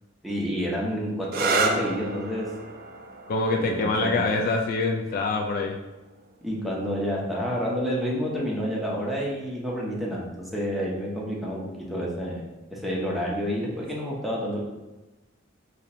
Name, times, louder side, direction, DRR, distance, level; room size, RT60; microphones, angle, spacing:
voice 1, 0.2-2.5 3.6-4.4 6.4-12.4 12.7-14.6, equal, ahead, -5 dB, 0.7 m, -29 dB
sound 1, 1.2-8.7 9.7-10.2 13.7-14.1, right 3 dB, 50° right, 0.4 m, -33 dB
voice 2, 3.3-5.8, left 3 dB, 50° left, 2 dB, 0.3 m, -25 dB
2.7 x 2.5 x 4.1 m, 1.1 s
head